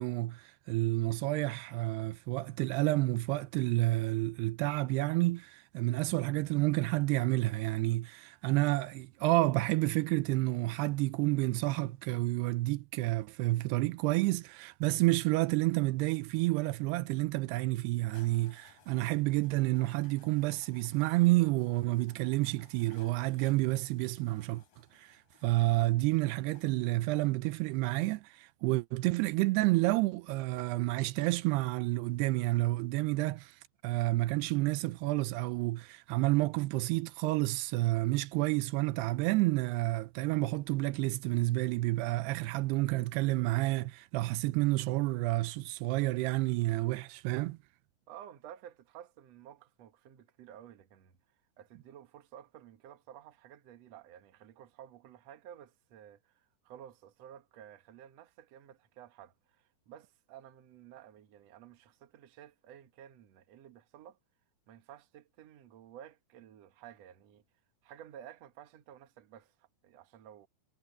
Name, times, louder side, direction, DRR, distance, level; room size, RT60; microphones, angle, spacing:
voice 1, 0.0-24.6 24.9-33.6 33.8-47.6, right 19 dB, 85° right, 2.6 m, -30 dB
sound 1, 18.1-26.7, left 8 dB, 65° left, 6.0 m, -62 dB
voice 2, 48.1-64.2 64.7-67.4 67.8-70.5, right 10 dB, 55° right, 2.0 m, -53 dB
omnidirectional pair, 4.7 m